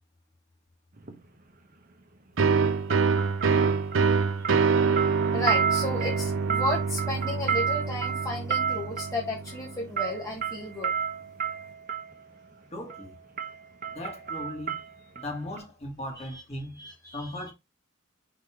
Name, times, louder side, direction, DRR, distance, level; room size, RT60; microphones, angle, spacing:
sound 1, 1.0-1.2 2.9-4.2 4.4-12.1 12.9-13.1 13.4-15.3 15.6-15.7, right 7 dB, 40° right, 1.0 m, -31 dB
sound 2, 2.4-9.8, right 5 dB, 65° right, 0.6 m, -26 dB
voice 1, 5.3-10.9 16.2-16.4 16.8-17.5, left 2 dB, 15° left, 1.2 m, -33 dB
voice 2, 12.7-13.2 13.9-14.9 15.2-16.9 17.1-17.5, left 1 dB, 30° left, 1.8 m, -38 dB
5.3 x 4.1 x 4.9 m
head